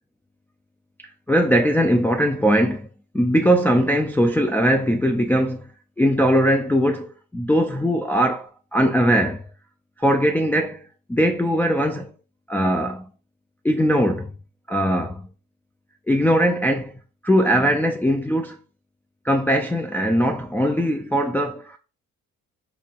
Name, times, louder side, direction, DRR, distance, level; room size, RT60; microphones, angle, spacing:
voice 1, 1.3-2.9 3.1-5.6 6.0-9.4 10.0-10.8 11.1-12.1 12.5-13.1 13.6-14.3 14.7-15.3 16.1-16.9 17.2-18.6 19.2-21.8, equal, 5° left, 0.4 m, -20 dB
4.6 x 3.8 x 2.5 m
cardioid pair, 90°, 30 cm